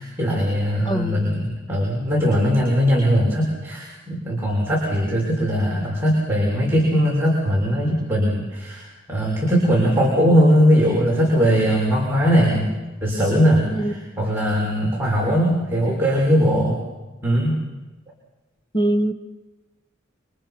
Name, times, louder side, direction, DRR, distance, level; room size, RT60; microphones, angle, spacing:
voice 1, 0.0-12.7 13.0-13.7 14.2-16.8 17.2-17.6, equal, 10° right, -5 dB, 6.8 m, -20 dB
voice 2, 0.8-1.3 13.7-14.2 18.7-19.1, right 1 dB, 25° left, 8 dB, 1.5 m, -23 dB
29.5 x 26.5 x 6.1 m, 1.1 s
head